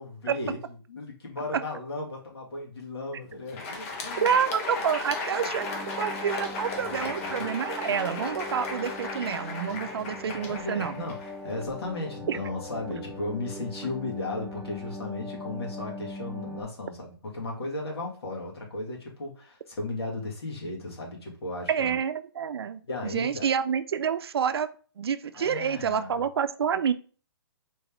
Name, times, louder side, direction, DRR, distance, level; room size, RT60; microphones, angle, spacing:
voice 1, 0.0-4.4 5.3-5.5 6.8-7.5 9.7-21.9 22.9-23.5 25.4-26.2, left 2 dB, 85° left, -1 dB, 2.0 m, -36 dB
Crowd, 3.3-11.8, left 3 dB, 35° left, 1.0 m, -35 dB
voice 2, 4.2-5.7 6.0-10.9 12.3-12.4 21.7-22.8 23.1-24.7 25.0-26.9, right 7 dB, 75° right, 13 dB, 0.5 m, -28 dB
sound 1, 5.6-16.6, left 2 dB, 10° right, 1.4 m, -41 dB
4.1 x 3.5 x 3.5 m, 0.40 s
hypercardioid pair, 150°, 13 cm